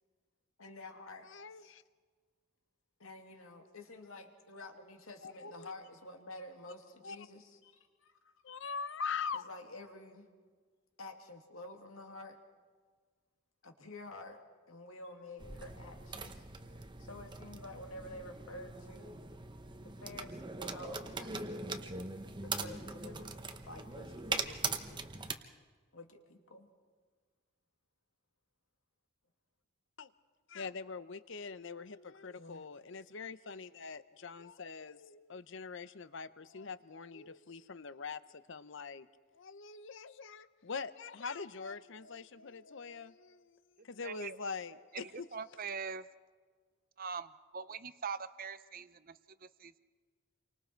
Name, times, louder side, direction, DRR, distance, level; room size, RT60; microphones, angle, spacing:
voice 1, 0.6-1.7 3.0-8.3 9.3-10.3 11.0-12.4 13.6-16.5 17.0-19.2 19.8-21.5 22.4-25.0 25.9-26.7 32.4-32.7, left 2 dB, 75° left, 4 dB, 2.4 m, -50 dB
voice 2, 1.3-1.8 5.2-5.7 7.0-7.2 8.4-9.5 30.0-30.1 30.5-39.1 39.3-43.6 43.8-45.6, left 5 dB, 60° left, 14 dB, 0.7 m, -43 dB
sound 1, 15.4-25.3, right 4 dB, 20° right, 1.0 m, -41 dB
voice 3, 44.0-44.4 44.9-46.0 47.0-49.8, right 6 dB, 40° right, 13 dB, 0.7 m, -43 dB
29.0 x 24.5 x 4.5 m, 1.5 s
head